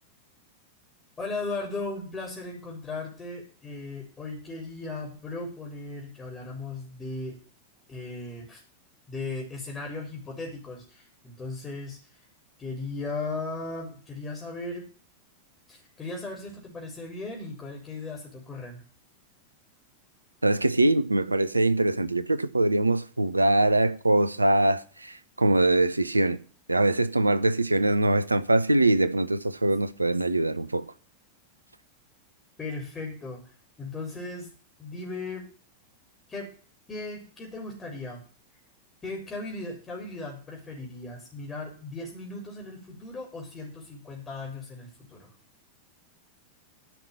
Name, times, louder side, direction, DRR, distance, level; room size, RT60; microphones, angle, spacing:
voice 1, 1.2-7.4 7.9-8.6 9.1-12.2 12.6-14.9 15.7-18.8 32.6-34.5 34.8-35.5 36.3-36.5 36.9-38.2 39.0-45.3, left 3 dB, 20° left, 3.9 m, -37 dB
voice 2, 20.4-26.4 26.7-30.9, right 2 dB, 80° right, 0.7 m, -23 dB
10.5 x 5.8 x 8.6 m
figure-of-eight pair, 90°, 0 cm